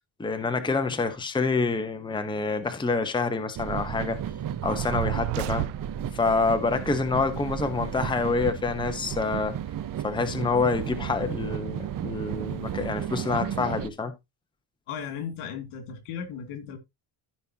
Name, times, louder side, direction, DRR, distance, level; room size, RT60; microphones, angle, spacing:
voice 1, 0.2-4.2 4.6-5.7 6.1-9.6 10.0-14.1, left 4 dB, 10° left, 1.0 m, -27 dB
sound 1, 3.6-13.9, right 9 dB, 40° right, 0.8 m, -33 dB
sound 2, 4.6-6.3, right 17 dB, 85° right, 0.6 m, -32 dB
voice 2, 14.9-16.8, left 7 dB, 85° left, 2.8 m, -36 dB
14.5 x 5.5 x 2.9 m
cardioid pair, 135°, 50 cm